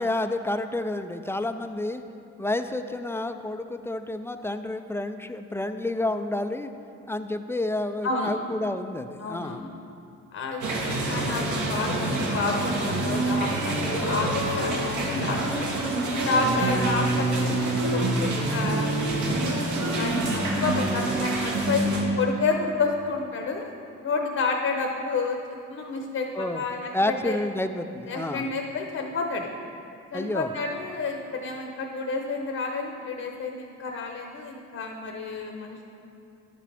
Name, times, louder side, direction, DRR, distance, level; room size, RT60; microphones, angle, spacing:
voice 1, 0.0-2.0 2.4-6.7 7.1-9.6 26.3-26.6 26.9-28.5 30.1-30.5, left 2 dB, 10° left, 8 dB, 0.3 m, -29 dB
voice 2, 9.2-9.7 10.3-15.7 16.1-18.9 19.3-23.7 24.0-25.4 25.7-27.3 28.1-29.5 30.1-35.8, left 4 dB, 50° left, 2 dB, 0.8 m, -30 dB
sound 1, 10.6-22.0, right 2 dB, 75° right, 1.5 m, -26 dB
10.5 x 7.6 x 3.4 m, 2.7 s
cardioid pair, 90°, 30 cm